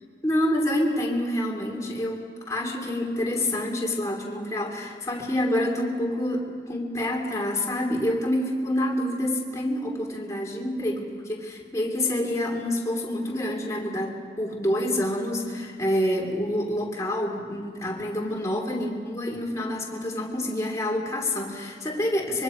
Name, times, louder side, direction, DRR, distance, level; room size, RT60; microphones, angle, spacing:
voice 1, 0.2-22.4, left 1 dB, 20° left, -1 dB, 2.9 m, -27 dB
25.0 x 23.0 x 5.1 m, 2.2 s
head